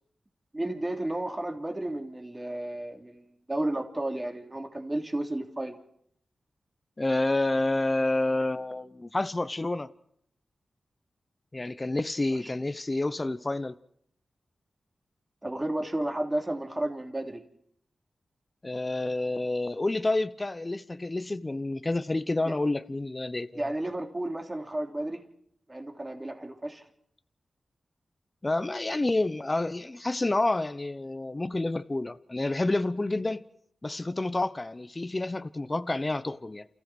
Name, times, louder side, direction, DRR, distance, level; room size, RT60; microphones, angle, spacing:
voice 1, 0.5-5.8 12.4-12.5 15.4-17.4 22.4-22.6 23.5-25.2 25.7-26.8, right 1 dB, 25° right, 3.3 m, -32 dB
voice 2, 7.0-9.9 11.5-13.7 18.6-23.6 28.4-33.4 33.8-36.6, left 2 dB, 30° left, 0.9 m, -29 dB
28.5 x 14.5 x 6.3 m
cardioid pair, 50°, 0 cm